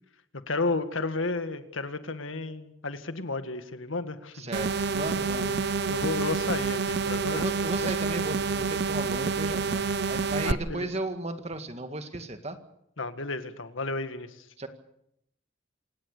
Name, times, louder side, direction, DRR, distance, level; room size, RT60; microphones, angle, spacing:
voice 1, 0.5-4.4 5.2-5.6 5.9-7.5 7.8-7.9 10.4-10.9 13.0-14.4, left 3 dB, 90° left, 10 dB, 1.9 m, -32 dB
voice 2, 4.3-5.5 7.3-12.6 14.6-14.7, right 2 dB, 35° right, 8 dB, 2.0 m, -35 dB
sound 1, 4.5-10.5, right 4 dB, 55° right, 0.7 m, -28 dB
27.5 x 17.5 x 6.8 m, 0.75 s
head